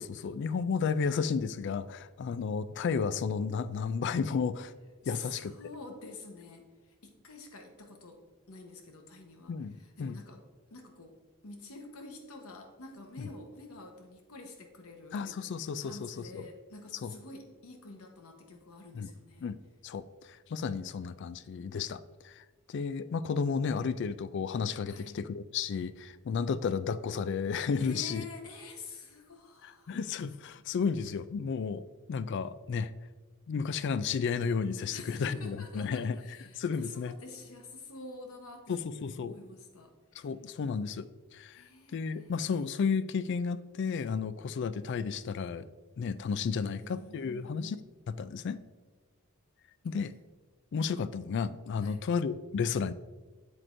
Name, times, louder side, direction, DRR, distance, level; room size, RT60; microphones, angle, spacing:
voice 1, 0.0-4.7 5.1-5.5 9.5-10.2 13.2-13.3 15.1-16.5 17.0-17.1 18.9-19.1 19.4-19.6 19.8-28.2 29.6-32.9 33.5-36.2 36.6-37.1 38.7-39.4 40.2-41.6 41.9-45.7 46.0-47.8 48.1-48.6 49.8-50.1 50.7-52.9, left 5 dB, 55° left, 15 dB, 0.3 m, -33 dB
voice 2, 5.0-8.2 8.5-10.4 10.7-11.2 11.4-15.3 15.6-19.5 24.9-25.2 27.8-30.0 34.9-39.9 41.5-42.3 46.7-47.6 51.8-52.0, left 3 dB, 90° left, 4 dB, 1.1 m, -48 dB
7.6 x 7.6 x 2.6 m, 1.3 s
head